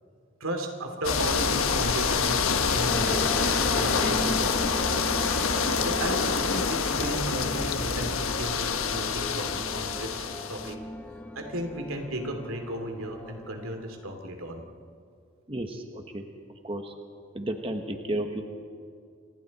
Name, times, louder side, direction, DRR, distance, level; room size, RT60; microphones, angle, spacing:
voice 1, 0.4-3.2 3.7-4.7 5.8-6.3 6.7-10.8 11.3-14.6, right 1 dB, 90° right, 4 dB, 2.8 m, -34 dB
sound 1, 1.0-10.7, left 5 dB, 85° left, 1.3 m, -26 dB
sound 2, 2.9-14.2, left 1 dB, 5° left, 1.0 m, -37 dB
voice 2, 15.5-16.2 16.6-16.9 17.3-18.4, right 1 dB, 25° right, 5 dB, 1.2 m, -32 dB
29.0 x 25.0 x 4.3 m, 2.4 s
head